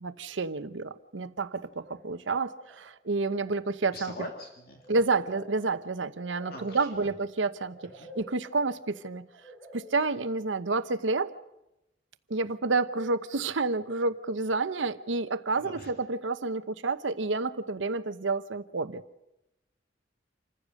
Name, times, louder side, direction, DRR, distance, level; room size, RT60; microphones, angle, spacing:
voice 1, 0.0-4.1 4.9-7.8 8.2-9.3 9.7-11.3 12.3-19.0, right 3 dB, 90° right, 12 dB, 0.9 m, -29 dB
sound 1, 1.8-2.2 2.5-2.9 3.2-10.8, right 1 dB, 10° left, 4.6 m, -51 dB
voice 2, 3.9-4.8 6.5-7.1 8.0-8.1 15.6-15.9, left 1 dB, 55° left, 2 dB, 2.2 m, -42 dB
27.5 x 15.0 x 6.4 m, 0.92 s
head